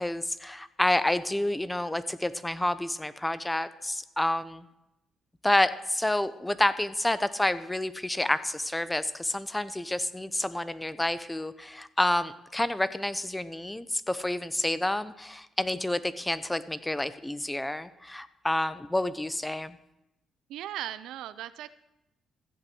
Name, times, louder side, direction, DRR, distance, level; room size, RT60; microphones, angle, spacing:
voice 1, 0.0-4.6 5.4-19.8, left 1 dB, 10° left, 15 dB, 0.8 m, -29 dB
voice 2, 20.5-21.7, right 12 dB, 85° right, 14 dB, 0.6 m, -37 dB
14.5 x 8.1 x 7.8 m, 0.89 s
cardioid pair, 90°, 0 cm